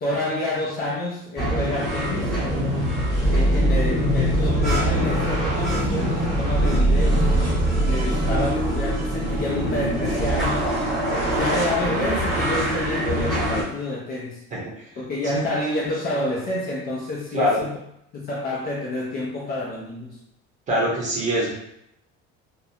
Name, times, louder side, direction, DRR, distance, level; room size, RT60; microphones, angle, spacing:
voice 1, 0.0-2.4 3.2-7.4 7.8-10.7 11.2-14.5 15.0-17.8 18.1-20.2, left 2 dB, 35° left, -3 dB, 0.4 m, -28 dB
sound 1, 1.4-13.6, right 1 dB, ahead, 1.0 m, -22 dB
voice 2, 20.7-21.5, equal, 25° right, -5 dB, 0.7 m, -23 dB
2.4 x 2.1 x 2.7 m, 0.78 s
cardioid pair, 170°, 29 cm